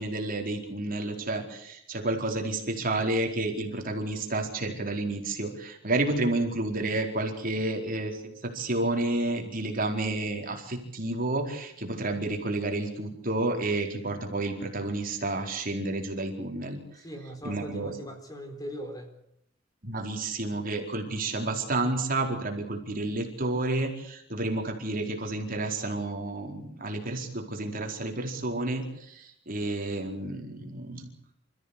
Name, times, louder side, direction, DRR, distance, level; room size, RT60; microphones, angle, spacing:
voice 1, 0.0-16.8 17.4-17.9 19.8-31.1, right 2 dB, 45° right, 3 dB, 4.5 m, -30 dB
voice 2, 16.9-19.1, equal, 20° left, 5 dB, 4.1 m, -40 dB
28.0 x 15.0 x 8.5 m, 0.75 s
head